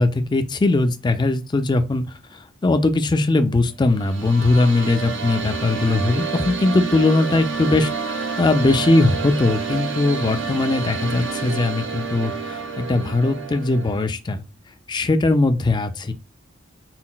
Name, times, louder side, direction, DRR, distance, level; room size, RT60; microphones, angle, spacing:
voice 1, 0.0-2.0 2.3-14.4 14.9-16.1, left 2 dB, 20° left, 0.4 m, -20 dB
sound 1, 3.8-14.1, right 5 dB, 65° right, 0.7 m, -29 dB
5.7 x 2.1 x 2.3 m
head